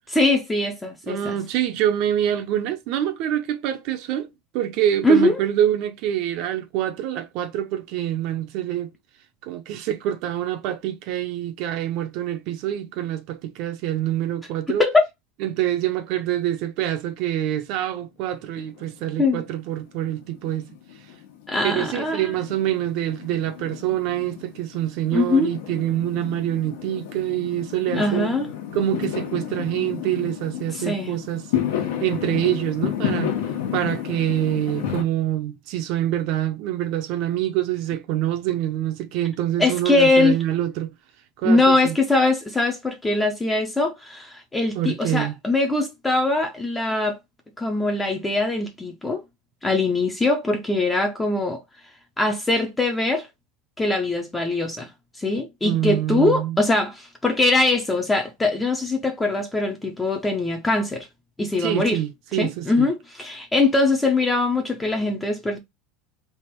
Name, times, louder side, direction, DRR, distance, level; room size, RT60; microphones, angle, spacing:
voice 1, 0.1-1.4 5.0-5.4 14.7-15.1 19.2-19.4 21.5-22.3 25.1-25.5 27.9-28.5 30.7-31.1 39.6-40.4 41.4-47.2 47.6-49.2 49.6-51.6 52.2-53.3 53.8-54.9 55.2-61.1 61.4-62.0 62.4-65.6, left 2 dB, 10° left, 0.5 m, -22 dB
voice 2, 1.1-8.9 9.4-14.8 15.4-20.7 21.6-28.3 28.7-31.5 32.0-33.3 33.7-40.9 41.4-42.0 44.7-45.3 55.6-56.6 61.6-62.9, right 12 dB, 50° right, 0.6 m, -26 dB
Fireworks, 18.6-19.5 19.8-35.0, left 10 dB, 90° left, 1.2 m, -31 dB
3.4 x 2.4 x 4.4 m
supercardioid pair, 170°, 0 cm